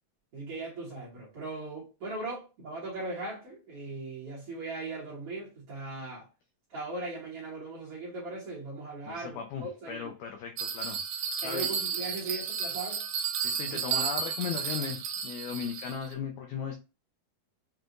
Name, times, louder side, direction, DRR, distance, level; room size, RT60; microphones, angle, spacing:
voice 1, 0.3-6.3 6.7-10.1 11.4-13.0 13.6-14.0, right 2 dB, 60° right, 1.6 m, -39 dB
voice 2, 9.1-11.7 13.4-16.8, left 7 dB, 85° left, 1.6 m, -37 dB
Bell, 10.6-16.1, right 7 dB, 80° right, 2.3 m, -33 dB
6.0 x 2.3 x 2.5 m
omnidirectional pair, 4.0 m